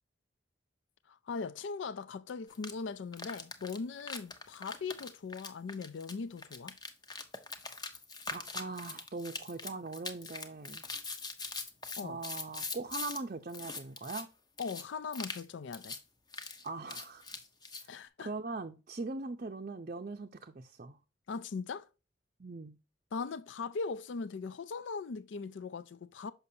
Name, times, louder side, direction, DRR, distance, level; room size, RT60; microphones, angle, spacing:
voice 1, 1.1-6.8 12.0-12.2 14.6-16.0 17.9-18.3 21.3-21.9 23.1-26.3, left 4 dB, 70° left, 0.4 m, -39 dB
sound 1, 2.5-2.7 3.1-13.2 13.5-14.2 14.6-14.8 15.1-15.4 15.7-16.0 16.3-17.9, left 4 dB, 20° left, 0.7 m, -42 dB
voice 2, 8.3-10.9 12.0-14.3 16.6-17.4 18.2-21.0 22.4-22.8, right 3 dB, 40° right, 0.5 m, -41 dB
6.7 x 5.8 x 2.7 m
head